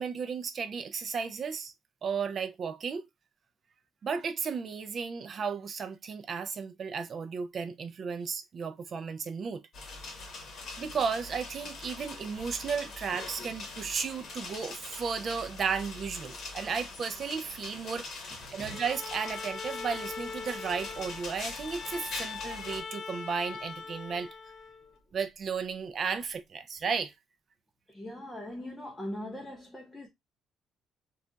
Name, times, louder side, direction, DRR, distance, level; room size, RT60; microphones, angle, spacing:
voice 1, 0.0-1.7 2.0-3.1 4.0-9.6 10.8-24.3 25.1-27.1, right 6 dB, 35° right, 0.4 m, -34 dB
sound 1, 9.7-22.8, left 3 dB, 45° left, 1.0 m, -43 dB
Bowed string instrument, 18.7-25.0, left 5 dB, 60° left, 0.5 m, -41 dB
voice 2, 27.9-30.1, left 1 dB, 10° left, 0.6 m, -40 dB
2.3 x 2.2 x 3.8 m
cardioid pair, 160°, 0 cm